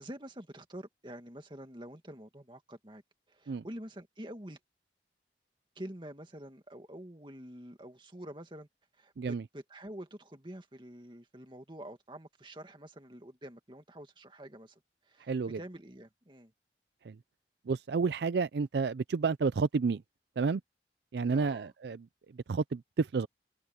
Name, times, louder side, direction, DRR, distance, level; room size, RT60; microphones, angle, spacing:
voice 1, 0.0-3.0 3.3-4.6 5.8-8.7 9.0-14.8 15.1-16.5 21.3-21.7, right 1 dB, 25° right, 2.1 m, -47 dB
voice 2, 15.3-15.6 17.1-17.2 17.7-20.0 20.4-20.6 21.1-22.0 22.5-23.3, right 4 dB, 70° right, 0.4 m, -30 dB
head